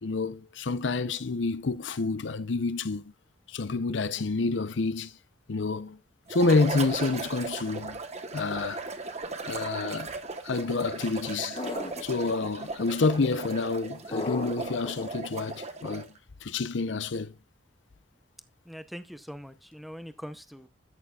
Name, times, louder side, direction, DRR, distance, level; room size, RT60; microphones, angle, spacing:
voice 1, 0.0-3.1 3.5-5.1 5.5-6.0 6.3-8.0 8.3-8.8 9.4-10.1 10.4-11.6 12.0-16.1 16.4-17.3, left 3 dB, 80° left, 0.7 m, -28 dB
sound 1, 6.3-16.2, right 3 dB, 40° right, 1.1 m, -37 dB
sound 2, 11.6-12.5 14.1-15.1, left 2 dB, 30° left, 1.0 m, -35 dB
voice 2, 18.7-20.7, equal, ahead, 0.7 m, -42 dB
13.5 x 6.8 x 2.4 m
head